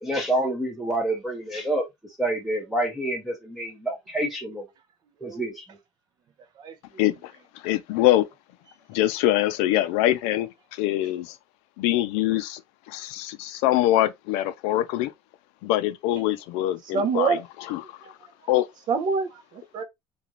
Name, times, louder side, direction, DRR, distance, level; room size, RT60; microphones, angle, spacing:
voice 1, 0.0-1.8 2.2-4.6 5.2-5.6, right 1 dB, ahead, 0.6 m, -27 dB
voice 2, 7.0-8.3 8.9-11.4 11.8-12.6 12.9-15.1 15.6-17.4 17.7-18.0 18.5-18.7, left 14 dB, 90° left, 0.5 m, -24 dB
voice 3, 16.9-17.4 18.0-18.1 18.9-19.8, right 5 dB, 45° right, 0.5 m, -26 dB
2.5 x 2.3 x 2.9 m
cardioid pair, 155°, 10 cm